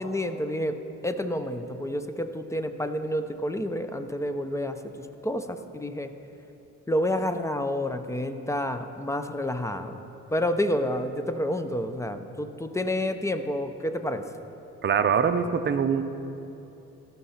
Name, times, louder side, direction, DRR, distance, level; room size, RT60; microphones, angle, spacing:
voice 1, 0.0-6.1 6.9-10.0 10.3-14.3, left 1 dB, 10° left, 9 dB, 0.6 m, -29 dB
voice 2, 14.8-16.0, right 7 dB, 35° right, 10 dB, 0.6 m, -23 dB
14.5 x 5.9 x 5.7 m, 2.9 s
cardioid pair, 90°, 30 cm